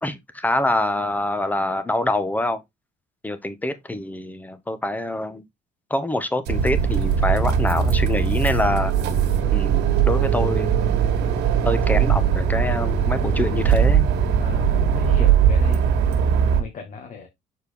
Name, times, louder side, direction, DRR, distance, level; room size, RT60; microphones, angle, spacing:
voice 1, 0.0-2.6 3.2-5.4 5.9-8.9 9.5-10.8 11.6-14.1, left 1 dB, 10° left, 1.0 m, -25 dB
sound 1, 6.5-16.6, right 7 dB, 85° right, 1.6 m, -20 dB
voice 2, 14.4-16.0 16.2-17.3, left 5 dB, 50° left, 1.7 m, -37 dB
6.6 x 4.5 x 3.5 m
cardioid pair, 110°, 17 cm